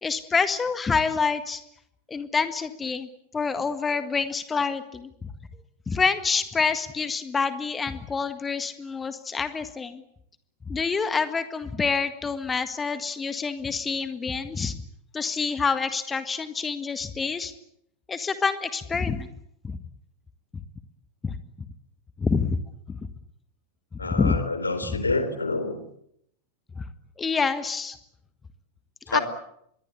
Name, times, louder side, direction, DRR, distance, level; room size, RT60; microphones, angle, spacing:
voice 1, 0.0-1.6 2.1-3.1 3.3-5.3 5.9-10.0 10.7-14.7 15.1-17.5 18.1-19.3 19.6-19.8 21.2-21.3 22.2-22.6 24.0-24.4 24.9-25.0 26.8-26.9 27.2-28.0 29.1-29.2, left 5 dB, 15° left, 11 dB, 1.7 m, -27 dB
voice 2, 24.0-25.8 29.1-29.2, left 3 dB, 80° left, 11 dB, 3.5 m, -27 dB
25.5 x 22.0 x 8.5 m, 0.73 s
figure-of-eight pair, 90°, 0 cm